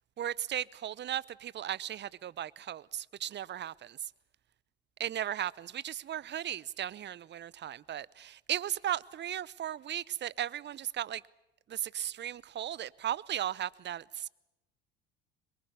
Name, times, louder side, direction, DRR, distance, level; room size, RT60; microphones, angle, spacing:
voice 1, 0.2-4.0 5.0-11.2 11.7-14.3, right 11 dB, 35° right, 0.8 m, -36 dB
25.0 x 22.5 x 7.1 m
hypercardioid pair, 70°, 30 cm